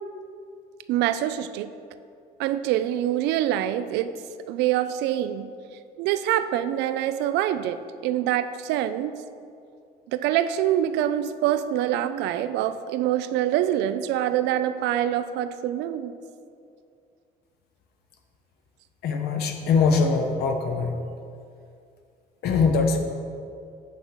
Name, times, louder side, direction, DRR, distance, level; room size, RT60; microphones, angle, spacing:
voice 1, 0.9-1.7 2.4-4.1 4.5-5.5 6.0-9.1 10.1-16.1, right 11 dB, 85° right, 12 dB, 0.4 m, -25 dB
voice 2, 19.0-21.0 22.4-23.0, left 4 dB, 70° left, 4 dB, 0.8 m, -22 dB
8.4 x 3.8 x 6.1 m, 2.4 s
cardioid pair, 110°, 17 cm